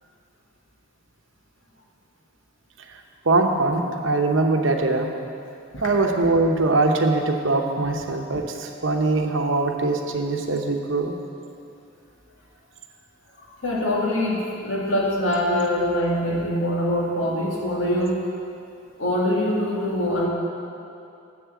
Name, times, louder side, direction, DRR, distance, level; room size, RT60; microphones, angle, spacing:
voice 1, 3.2-5.1 5.8-11.1, right 3 dB, 70° right, 3 dB, 0.9 m, -22 dB
voice 2, 13.6-18.2 19.0-20.3, left 1 dB, 75° left, -3 dB, 1.9 m, -23 dB
7.8 x 7.4 x 7.1 m, 2.6 s
head